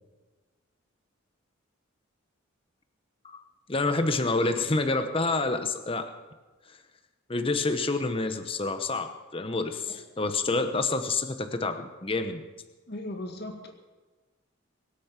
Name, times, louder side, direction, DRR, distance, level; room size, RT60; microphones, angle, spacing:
voice 1, 3.7-6.1 6.7-6.8 7.3-12.4, left 3 dB, 25° left, 8 dB, 0.9 m, -28 dB
voice 2, 12.9-13.7, left 1 dB, 50° left, 4 dB, 2.1 m, -37 dB
23.5 x 8.6 x 6.0 m, 1.3 s
head